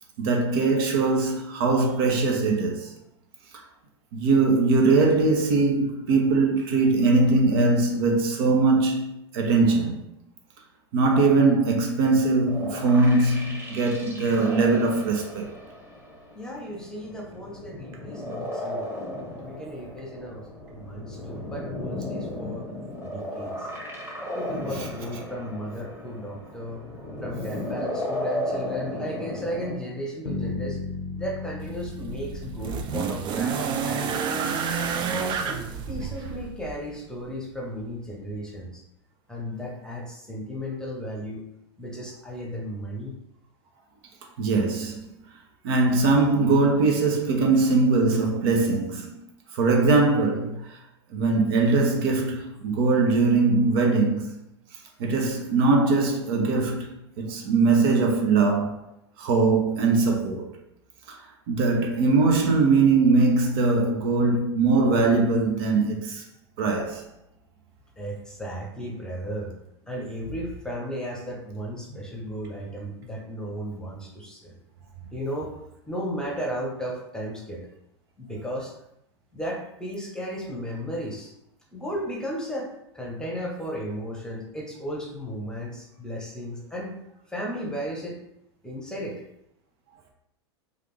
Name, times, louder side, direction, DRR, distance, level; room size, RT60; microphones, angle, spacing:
voice 1, 0.2-2.9 4.1-10.0 10.9-15.5 44.4-45.1 45.6-49.2 49.5-50.7 51.1-54.3 55.0-56.9 57.2-58.8 59.2-60.4 61.1-61.2 61.5-66.2 66.6-67.0, right 3 dB, 60° right, 0.8 m, -21 dB
sound 1, 12.5-29.7, left 1 dB, 15° right, 1.3 m, -35 dB
voice 2, 16.3-18.9 19.4-22.7 23.0-23.7 24.3-26.8 27.2-30.8 31.1-34.6 35.3-38.8 39.3-41.4 41.8-43.1 68.0-69.5 69.9-74.6 75.1-75.6 75.9-77.6 78.2-78.7 79.3-81.3 81.7-86.9 87.3-88.2 88.6-89.2, equal, 5° left, 0.9 m, -35 dB
Bass guitar, 30.3-34.3, left 3 dB, 85° left, 0.6 m, -36 dB
sound 2, 31.6-36.8 37.9-38.0, right 6 dB, 35° right, 0.4 m, -29 dB
3.3 x 2.5 x 3.2 m
hypercardioid pair, 90°, 14 cm